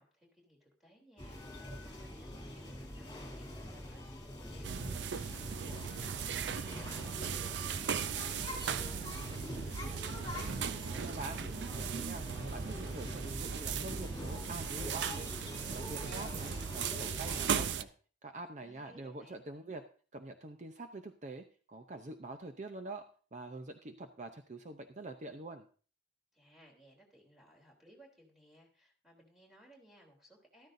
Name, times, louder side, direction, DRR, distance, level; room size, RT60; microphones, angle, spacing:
voice 1, 0.0-10.2 18.6-19.5 26.3-30.7, equal, ahead, -2 dB, 3.3 m, -62 dB
sound 1, 1.2-17.6, left 1 dB, 25° left, 3.0 m, -45 dB
sound 2, 4.6-17.8, right 7 dB, 85° right, 0.5 m, -38 dB
voice 2, 10.9-15.3 15.7-17.9 18.2-19.8 20.1-23.1 23.3-25.7, right 2 dB, 45° right, 7 dB, 0.7 m, -45 dB
13.5 x 13.0 x 2.7 m, 0.39 s
head